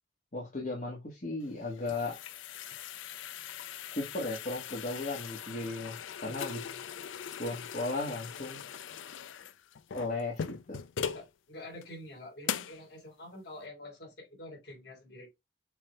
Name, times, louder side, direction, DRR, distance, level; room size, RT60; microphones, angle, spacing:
voice 1, 0.3-2.2 3.9-6.8 7.4-8.6 9.9-10.8, left 2 dB, 45° left, 1.3 m, -36 dB
sound 1, 1.5-11.3 11.8-11.9 12.4-12.8, left 8 dB, 90° left, 0.4 m, -40 dB
voice 2, 6.6-7.0 11.1-15.3, left 1 dB, 60° left, 3.6 m, -47 dB
6.9 x 3.3 x 2.2 m
head